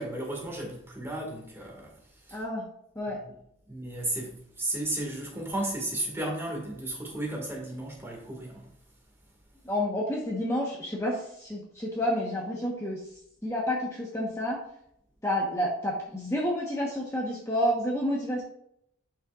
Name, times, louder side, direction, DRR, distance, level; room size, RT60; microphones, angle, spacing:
voice 1, 0.0-1.9 2.3-2.4 3.0-3.3 3.7-8.7, right 1 dB, 10° right, 1.9 m, -34 dB
voice 2, 2.3-2.6 3.0-3.2 9.6-13.0 13.4-14.6 15.2-18.4, equal, 15° left, 1.1 m, -29 dB
10.5 x 5.8 x 2.5 m
head